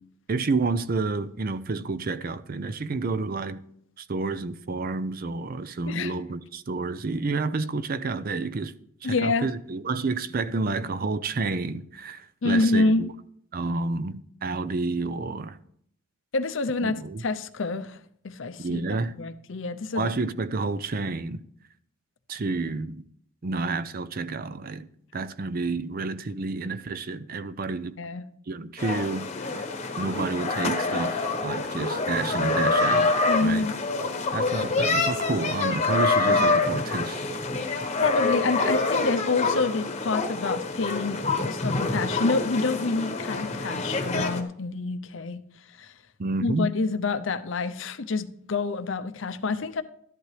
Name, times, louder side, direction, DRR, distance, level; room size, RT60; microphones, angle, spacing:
voice 1, 0.3-3.6 4.0-8.7 9.0-13.1 13.5-15.6 16.8-17.2 18.6-19.2 19.9-21.4 22.3-23.0 23.4-24.9 25.1-28.0 28.5-29.7 30.0-33.1 33.4-33.7 34.3-37.2 46.2-46.7, right 3 dB, 45° right, 0.5 m, -30 dB
voice 2, 9.0-9.5 12.4-13.0 16.3-17.0 17.2-18.0 18.2-18.8 19.2-20.1 28.0-28.2 33.3-33.7 36.3-36.4 38.0-45.4 45.8-45.9 46.4-49.8, left 3 dB, 60° left, 0.6 m, -27 dB
sound 1, 28.8-44.4, left 3 dB, 30° left, 1.1 m, -26 dB
13.0 x 11.0 x 3.3 m
head